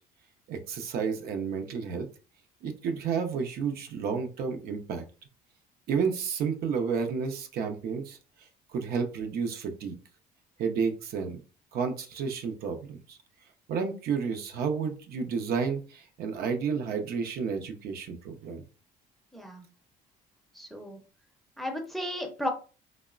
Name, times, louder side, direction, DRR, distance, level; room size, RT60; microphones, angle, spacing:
voice 1, 0.5-2.1 2.6-5.0 5.9-8.2 8.7-9.9 10.6-11.4 11.7-13.2 13.7-18.6, right 6 dB, 65° right, 5 dB, 0.5 m, -31 dB
voice 2, 19.3-19.6 20.5-21.0 21.6-22.5, left 1 dB, ahead, 3 dB, 0.5 m, -34 dB
2.9 x 2.0 x 2.3 m, 0.35 s
cardioid pair, 110°, 17 cm